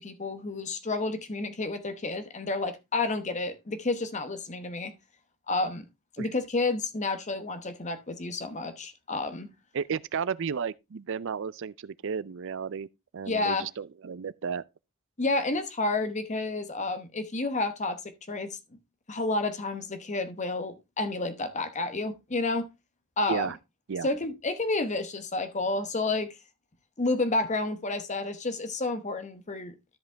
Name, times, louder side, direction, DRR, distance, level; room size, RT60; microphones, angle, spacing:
voice 1, 0.0-4.9 5.5-5.8 6.2-9.5 13.3-13.7 15.2-18.6 19.1-22.7 23.2-23.5 24.0-26.4 27.0-29.7, left 2 dB, 35° left, 1.0 m, -30 dB
voice 2, 9.7-12.9 13.1-14.6 23.3-23.6 23.9-24.1, right 6 dB, 60° right, 0.5 m, -33 dB
13.0 x 5.2 x 3.3 m
head